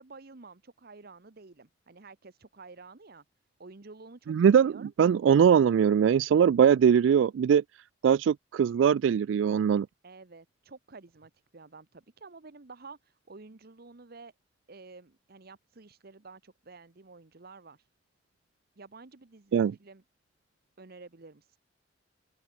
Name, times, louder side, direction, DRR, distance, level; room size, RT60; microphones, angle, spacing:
voice 1, 0.0-3.2 3.6-4.9 10.0-14.3 14.7-17.9 18.8-20.0 20.8-21.6, right 3 dB, 55° right, 1.0 m, -50 dB
voice 2, 4.3-7.6 8.0-9.9 19.5-19.7, right 8 dB, 80° right, 0.3 m, -21 dB
open air
head